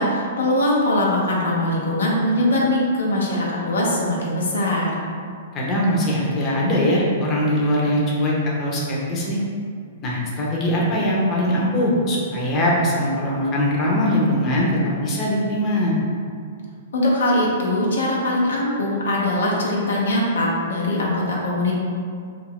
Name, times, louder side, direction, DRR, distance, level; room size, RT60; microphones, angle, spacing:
voice 1, 0.0-4.9 16.9-21.7, left 1 dB, 85° left, -4 dB, 0.6 m, -21 dB
voice 2, 5.5-8.3 8.6-9.4 10.0-15.9, equal, 30° left, -4 dB, 0.6 m, -21 dB
2.4 x 2.2 x 3.4 m, 2.2 s
hypercardioid pair, 130°, 0 cm